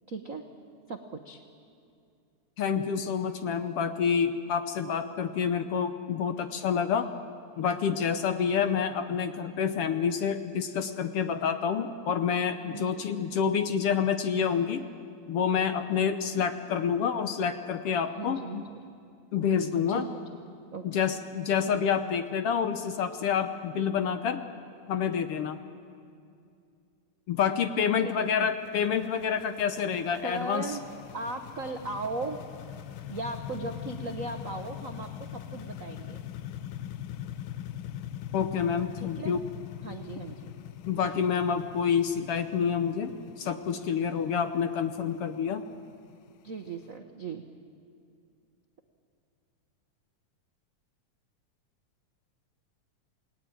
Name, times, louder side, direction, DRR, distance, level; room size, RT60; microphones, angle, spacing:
voice 1, 0.1-0.4 0.9-1.4 12.6-13.3 18.2-18.8 19.9-20.1 20.7-20.8 28.0-28.1 28.4-28.5 30.2-30.8 31.1-32.4 33.1-36.2 39.0-39.3 39.8-40.6 46.4-47.4, right 3 dB, 85° right, 4 dB, 0.7 m, -37 dB
voice 2, 2.6-7.1 7.6-14.8 15.3-18.6 19.3-20.1 20.8-24.4 24.9-25.6 27.3-30.7 38.3-39.4 40.9-45.6, left 7 dB, 65° left, 9 dB, 1.5 m, -28 dB
sound 1, 28.1-46.9, left 11 dB, 85° left, 1.1 m, -42 dB
29.0 x 19.0 x 9.0 m, 2.5 s
omnidirectional pair, 3.3 m